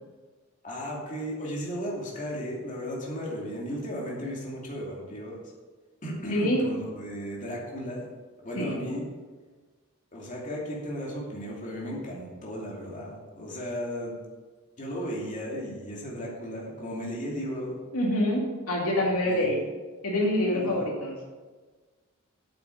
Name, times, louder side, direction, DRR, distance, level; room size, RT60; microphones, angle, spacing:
voice 1, 0.6-5.4 6.0-8.1 8.4-9.1 10.1-14.2 14.8-17.8 19.2-19.5 20.5-20.8, equal, 35° left, -4 dB, 2.7 m, -35 dB
voice 2, 17.9-19.6 20.0-21.1, left 1 dB, 85° left, -2 dB, 2.5 m, -26 dB
8.8 x 8.3 x 6.5 m, 1.3 s
head